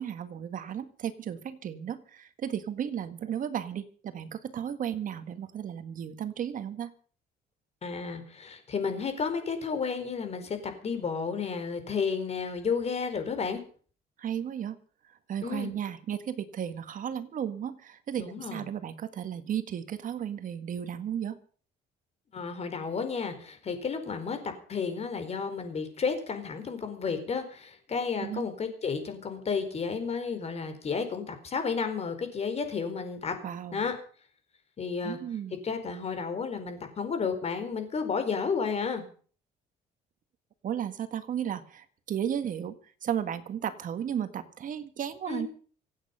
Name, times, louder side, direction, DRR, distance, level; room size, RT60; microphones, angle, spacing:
voice 1, 0.0-6.9 14.2-14.8 15.1-21.4 28.2-28.4 33.4-33.8 35.0-35.6 40.6-42.7 43.0-45.5, right 9 dB, 50° right, 10 dB, 1.6 m, -34 dB
voice 2, 7.8-10.6 10.8-13.6 15.4-15.7 18.2-18.6 22.3-33.4 33.7-33.9 34.8-35.2 35.6-39.0 45.3-45.4, left 5 dB, 40° left, 8 dB, 4.4 m, -32 dB
26.0 x 8.8 x 5.6 m, 0.43 s
cardioid pair, 110°, 17 cm